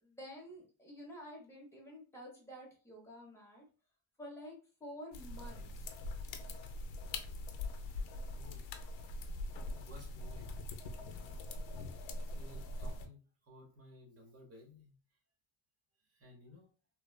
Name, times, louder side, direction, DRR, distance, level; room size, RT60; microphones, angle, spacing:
voice 1, 0.0-3.6 4.2-5.9, equal, 5° left, -4 dB, 0.8 m, -50 dB
sound 1, 5.1-13.1, left 2 dB, 70° left, 0.5 m, -42 dB
voice 2, 6.0-6.9 8.3-9.2 9.7-10.5 11.0-11.3 12.0-15.2 16.0-16.7, left 1 dB, 30° right, 0 dB, 0.8 m, -58 dB
3.0 x 2.2 x 2.3 m, 0.37 s
cardioid pair, 170°, 46 cm